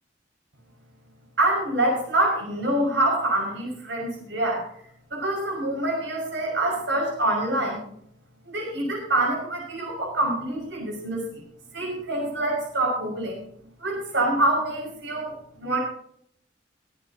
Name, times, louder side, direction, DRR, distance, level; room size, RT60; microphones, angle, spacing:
voice 1, 1.4-4.7 5.1-7.8 8.4-11.4 11.7-13.4 13.8-15.8, right 1 dB, 80° right, -2 dB, 6.1 m, -26 dB
23.0 x 11.0 x 2.9 m, 0.66 s
head